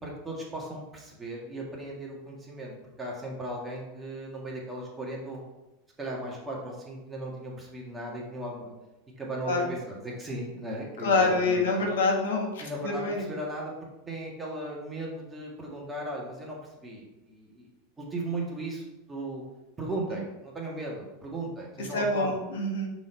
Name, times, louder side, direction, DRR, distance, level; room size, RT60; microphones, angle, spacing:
voice 1, 0.0-5.5 6.0-8.8 9.2-11.9 12.6-13.7 14.1-17.7 18.0-19.4 19.8-22.4, right 1 dB, 15° right, -3 dB, 1.8 m, -37 dB
voice 2, 11.0-13.3 20.1-20.2 21.8-22.9, left 3 dB, 90° left, 1 dB, 1.4 m, -26 dB
6.1 x 4.0 x 4.4 m, 1.0 s
supercardioid pair, 125°, 0 cm